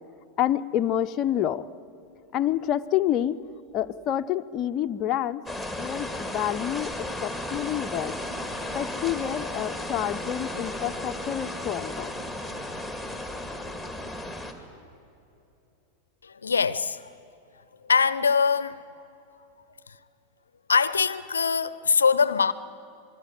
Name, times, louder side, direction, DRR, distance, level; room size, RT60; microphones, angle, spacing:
voice 1, 0.4-1.7 2.3-3.4 3.7-5.4 5.8-8.2 8.7-12.1, left 11 dB, 35° left, 0.6 m, -28 dB
sound 1, 5.5-14.5, left 1 dB, 5° right, 2.4 m, -34 dB
voice 2, 16.2-17.1 17.9-18.8 20.7-22.5, left 5 dB, 70° left, 0.6 m, -23 dB
27.0 x 21.0 x 7.9 m
figure-of-eight pair, 90°, 0 cm